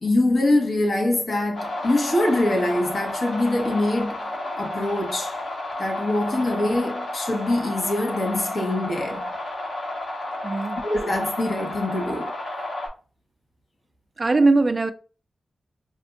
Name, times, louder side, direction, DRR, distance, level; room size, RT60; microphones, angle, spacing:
voice 1, 0.0-5.4 5.8-9.4 10.8-12.4, left 1 dB, 60° left, 1.1 m, -24 dB
sound 1, 1.5-12.9, left 1 dB, 90° left, 1.7 m, -32 dB
voice 2, 10.4-10.8 14.2-14.9, right 3 dB, 35° right, 0.3 m, -20 dB
5.0 x 2.5 x 2.3 m
wide cardioid pair, 120°, 0 cm